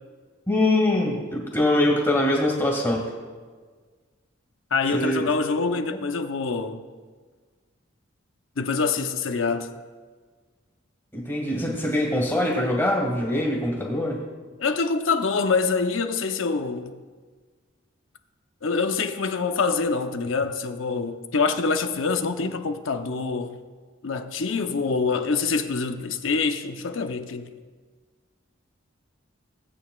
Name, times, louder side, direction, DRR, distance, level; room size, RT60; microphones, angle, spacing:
voice 1, 0.5-3.1 4.9-5.3 11.1-14.2, left 1 dB, 10° left, 2.1 m, -23 dB
voice 2, 4.7-6.8 8.6-9.7 14.6-16.9 18.6-23.6 24.0-27.5, left 4 dB, 70° left, 0.7 m, -25 dB
17.5 x 8.7 x 2.4 m
head